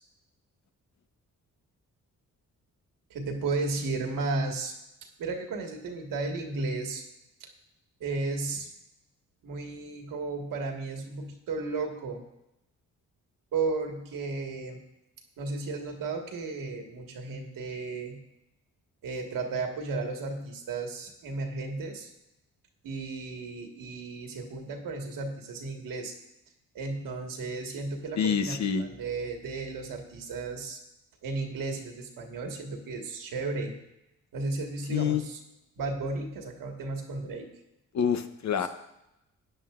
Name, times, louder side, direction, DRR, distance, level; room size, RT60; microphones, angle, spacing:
voice 1, 3.1-4.7 5.2-7.0 7.4-7.5 8.0-8.7 9.4-12.2 13.5-14.8 15.4-18.2 19.0-22.1 22.8-26.1 26.7-30.8 31.2-33.8 34.3-35.4 35.8-37.5 38.6-38.7, right 3 dB, 90° right, 3 dB, 1.8 m, -34 dB
voice 2, 28.2-28.8 34.9-35.2 37.9-38.7, left 7 dB, 60° left, 9 dB, 1.0 m, -26 dB
15.0 x 9.7 x 2.5 m, 0.88 s
cardioid pair, 80°, 32 cm